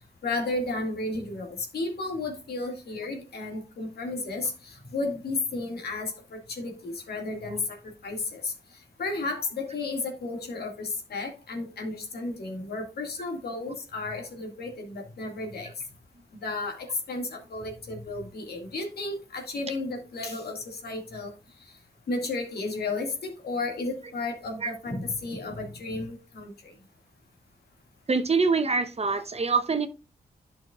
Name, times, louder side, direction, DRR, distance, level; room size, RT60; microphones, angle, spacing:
voice 1, 0.2-7.8 8.0-8.5 9.0-15.7 16.4-21.3 22.1-26.7, left 3 dB, 70° left, 2.2 m, -33 dB
voice 2, 28.1-29.9, right 4 dB, 40° right, 0.9 m, -25 dB
11.0 x 5.7 x 2.4 m
supercardioid pair, 40°, 17 cm